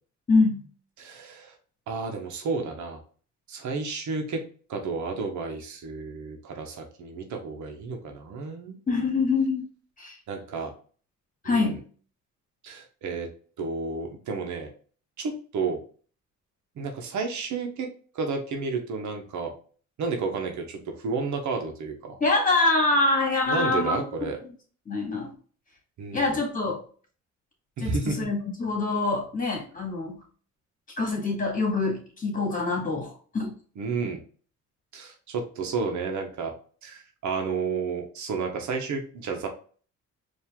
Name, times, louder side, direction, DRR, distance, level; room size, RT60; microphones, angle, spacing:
voice 1, 0.3-0.6 8.9-9.6 10.0-10.1 11.4-11.8 22.2-24.0 24.9-25.3 26.1-26.8 27.8-30.2 31.0-33.6, left 3 dB, 25° left, 1 dB, 1.9 m, -25 dB
voice 2, 1.0-1.5 1.9-3.0 3.5-4.4 4.7-8.8 10.3-10.7 11.4-11.8 12.6-13.3 13.6-14.7 15.2-15.8 16.8-17.9 18.1-19.5 20.0-22.2 23.5-24.4 26.0-26.4 27.8-28.3 33.8-34.2 34.9-36.5 36.8-39.5, right 4 dB, 70° right, 3 dB, 1.1 m, -31 dB
4.5 x 2.8 x 3.6 m, 0.42 s
cardioid pair, 90°, 30 cm